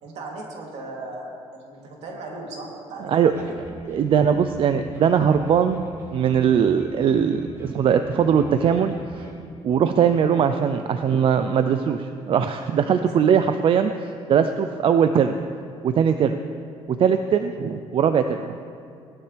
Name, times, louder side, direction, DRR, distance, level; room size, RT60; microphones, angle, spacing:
voice 1, 0.0-3.4 13.0-13.1, right 2 dB, 70° right, -2 dB, 3.0 m, -37 dB
sound 1, 3.3-9.4, right 1 dB, 25° right, 3.3 m, -42 dB
voice 2, 3.9-5.8 6.1-9.3 9.6-15.4 15.8-16.4 16.9-18.6, right 7 dB, 50° right, 8 dB, 0.5 m, -20 dB
18.5 x 12.5 x 3.4 m, 2.5 s
cardioid pair, 125°, 12 cm